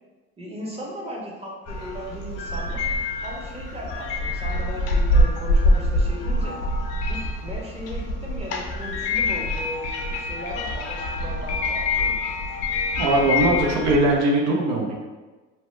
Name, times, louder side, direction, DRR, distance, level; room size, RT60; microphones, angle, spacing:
voice 1, 0.4-2.8 3.2-6.6 7.1-9.9 10.2-12.2, equal, 20° right, -2 dB, 0.7 m, -36 dB
sound 1, 1.7-14.2, left 1 dB, 55° left, 0.5 m, -25 dB
voice 2, 13.0-14.9, right 1 dB, 70° right, 0 dB, 0.6 m, -20 dB
2.8 x 2.1 x 3.1 m, 1.3 s
supercardioid pair, 95°, 30 cm